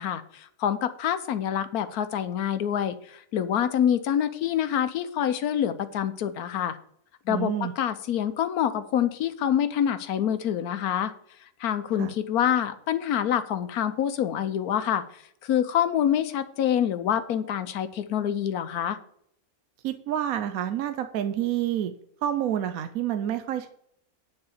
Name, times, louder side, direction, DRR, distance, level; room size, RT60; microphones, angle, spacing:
voice 1, 0.0-6.8 7.3-11.1 11.6-19.0, left 9 dB, 80° left, 12 dB, 1.2 m, -26 dB
voice 2, 7.3-7.7 12.0-12.1 19.8-21.9 22.2-23.7, right 11 dB, 75° right, 9 dB, 1.0 m, -28 dB
9.7 x 4.7 x 6.6 m, 0.67 s
omnidirectional pair, 1.6 m